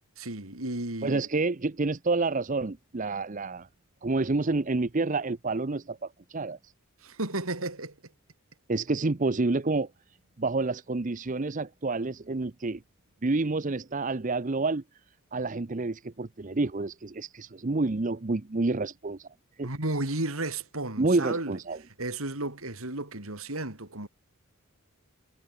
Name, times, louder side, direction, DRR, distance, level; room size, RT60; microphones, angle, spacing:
voice 1, 0.2-1.2 7.0-7.9 19.6-21.6 22.0-24.1, right 2 dB, 75° right, 4.3 m, -33 dB
voice 2, 1.0-3.7 4.0-6.6 8.7-9.9 10.4-12.8 13.2-14.8 15.3-19.3 19.6-19.7 21.0-21.8, right 3 dB, 35° right, 0.7 m, -28 dB
head